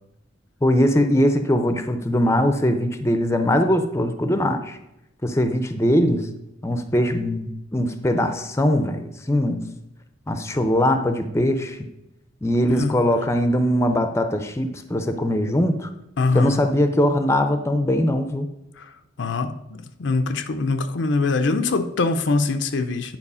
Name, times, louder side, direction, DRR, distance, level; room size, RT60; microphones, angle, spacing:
voice 1, 0.6-4.8 5.2-6.3 6.6-9.6 10.3-11.8 12.4-15.9 16.3-18.5, equal, 15° left, 8 dB, 0.6 m, -21 dB
voice 2, 16.2-16.6 18.8-23.2, left 3 dB, 65° left, 10 dB, 0.6 m, -23 dB
9.7 x 4.5 x 5.5 m, 0.89 s
head